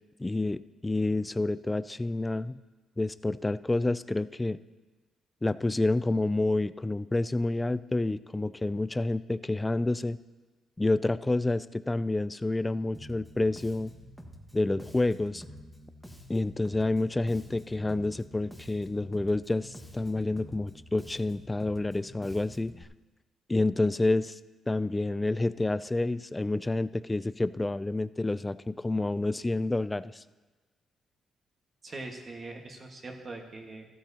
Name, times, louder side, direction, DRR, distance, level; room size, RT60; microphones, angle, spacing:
voice 1, 0.2-2.6 3.0-4.6 5.4-10.2 10.8-13.9 14.5-15.4 16.3-22.7 23.5-24.4 24.7-30.2, left 2 dB, 15° left, 15 dB, 0.3 m, -29 dB
Bass guitar, 12.9-22.8, equal, ahead, 1.4 m, -49 dB
voice 2, 31.8-33.9, right 2 dB, 35° right, 2 dB, 1.6 m, -42 dB
14.5 x 13.0 x 2.8 m, 1.2 s
cardioid pair, 115°, 0 cm